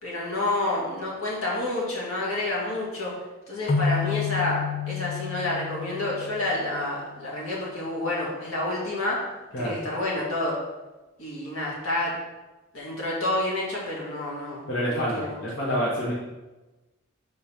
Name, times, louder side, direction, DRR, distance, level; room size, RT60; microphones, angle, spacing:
voice 1, 0.0-3.1 3.5-4.6 4.9-9.2 9.6-10.6 11.2-12.2 12.7-15.4, left 2 dB, 85° left, -4 dB, 2.1 m, -29 dB
sound 1, 3.7-7.2, left 6 dB, 30° left, 0.4 m, -30 dB
voice 2, 14.7-16.1, equal, 60° left, -6 dB, 1.3 m, -27 dB
5.2 x 4.0 x 5.8 m, 1.1 s
head